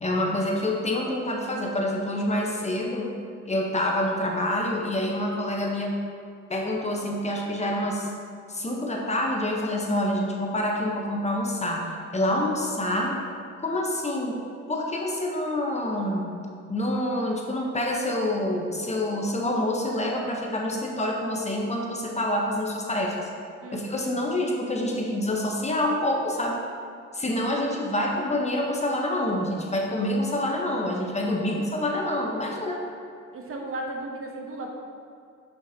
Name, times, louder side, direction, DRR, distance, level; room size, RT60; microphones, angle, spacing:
voice 1, 0.0-3.1 3.5-6.0 6.5-8.1 8.5-13.2 13.6-14.4 14.7-16.3 16.7-23.3 23.7-26.6 27.1-32.8, left 1 dB, 20° left, 0 dB, 0.9 m, -27 dB
voice 2, 23.6-24.2 30.7-31.6 32.1-32.2 33.3-34.7, right 2 dB, 45° right, 1 dB, 0.9 m, -37 dB
6.6 x 5.8 x 2.8 m, 2.3 s
cardioid pair, 90°, 30 cm